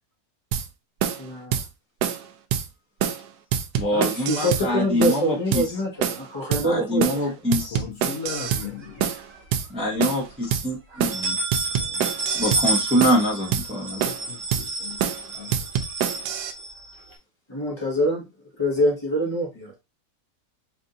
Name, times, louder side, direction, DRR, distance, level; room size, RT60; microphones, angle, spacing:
sound 1, 0.5-0.7 1.0-1.2 1.5-1.7 2.0-2.2 2.5-2.7 3.0-3.2 3.5-4.7 5.0-5.2 5.5-5.7 6.0-6.2 6.5-6.7 7.0-7.2 7.5-8.7 9.0-9.2 9.5-9.7 10.0-10.2 10.5-10.7 11.0-11.2 11.5-12.7 13.0-13.2 13.5-13.7 14.0-14.3 14.5-14.7 15.0-15.2 15.5-16.5, right 9 dB, 75° right, 1.1 m, -26 dB
voice 1, 1.2-1.6 3.9-7.2 17.5-18.2 18.6-19.7, equal, 20° left, 1.0 m, -25 dB
voice 2, 3.7-5.6 6.6-7.8 9.7-11.3 12.3-14.0, equal, 5° right, 0.9 m, -24 dB
voice 3, 7.7-9.1 11.7-12.1 13.9-15.0 15.3-15.7, left 6 dB, 60° left, 1.0 m, -37 dB
sound 2, 8.4-9.4 9.8-9.9 10.2-10.3 10.9-17.1, right 2 dB, 40° right, 1.2 m, -30 dB
3.5 x 2.6 x 3.8 m
omnidirectional pair, 1.9 m